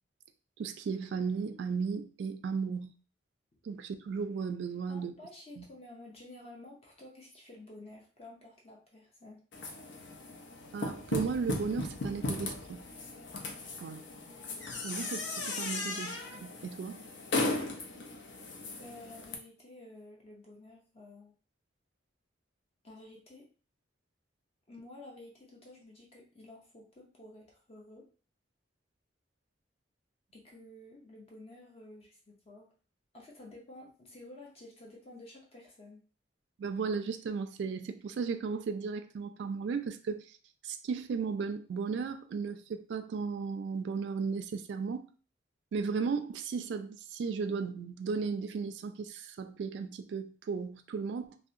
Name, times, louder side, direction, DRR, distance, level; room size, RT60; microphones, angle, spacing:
voice 1, 0.6-2.9 3.6-5.1 5.6-5.7 10.7-12.8 13.8-14.0 14.8-17.0 36.6-40.2 40.6-45.0 45.7-51.4, right 5 dB, 70° right, 0.3 m, -35 dB
voice 2, 4.9-9.4 18.7-21.3 22.8-23.5 24.7-28.1 30.3-32.7 33.1-36.0, left 2 dB, 35° left, 0.6 m, -51 dB
sound 1, 9.5-19.4, left 2 dB, 80° left, 0.5 m, -37 dB
2.7 x 2.0 x 2.5 m
head